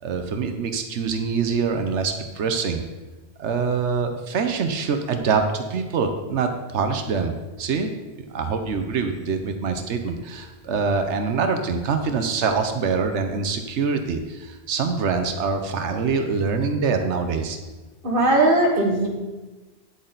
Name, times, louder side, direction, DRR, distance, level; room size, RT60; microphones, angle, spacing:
voice 1, 0.0-2.8 3.4-7.3 7.6-7.9 8.3-17.6, right 5 dB, 85° right, 6 dB, 1.1 m, -24 dB
voice 2, 18.0-19.1, right 2 dB, 50° right, -1 dB, 1.9 m, -18 dB
9.5 x 8.3 x 3.9 m, 1.2 s
omnidirectional pair, 1.1 m